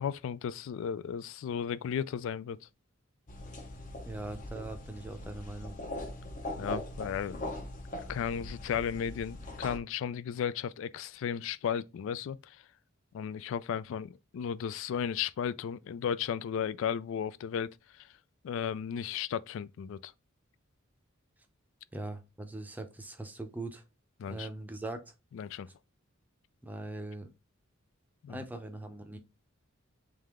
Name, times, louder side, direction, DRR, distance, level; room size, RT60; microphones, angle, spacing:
voice 1, 0.0-2.6 6.6-7.5 8.1-12.6 13.1-17.7 18.4-20.1 24.2-24.5 25.3-25.7 28.2-28.4, left 8 dB, 65° left, 0.3 m, -34 dB
sound 1, 3.3-9.8, left 1 dB, 40° left, 0.8 m, -41 dB
voice 2, 4.0-5.8 21.9-23.8 24.3-25.1 26.6-27.3 28.3-29.2, right 2 dB, 10° right, 0.6 m, -41 dB
3.5 x 3.2 x 3.5 m
head